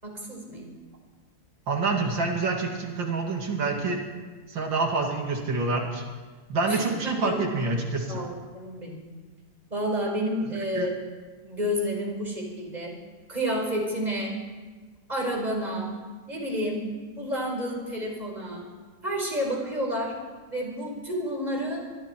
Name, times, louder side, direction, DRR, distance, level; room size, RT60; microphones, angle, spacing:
voice 1, 0.0-0.7 6.7-7.4 8.1-9.0 9.7-11.0 11.4-12.9 13.3-14.4 15.1-15.9 16.3-16.8 17.2-18.6 19.0-20.1 20.5-21.8, equal, 20° right, 0 dB, 4.9 m, -30 dB
voice 2, 1.7-4.0 4.5-6.0 6.5-8.2 10.7-10.9, right 3 dB, 90° right, 1 dB, 3.1 m, -27 dB
25.5 x 22.5 x 4.6 m, 1.4 s
omnidirectional pair, 2.0 m